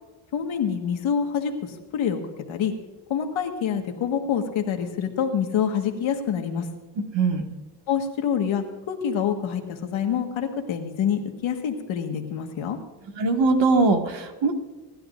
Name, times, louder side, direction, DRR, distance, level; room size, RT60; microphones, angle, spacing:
voice 1, 0.3-2.2 2.5-2.7 3.1-6.6 7.9-12.8, left 7 dB, 85° left, 4 dB, 1.7 m, -26 dB
voice 2, 7.1-7.5 13.2-14.5, right 3 dB, 70° right, 3 dB, 2.1 m, -21 dB
29.0 x 11.5 x 2.6 m, 1.2 s
cardioid pair, 80°, 46 cm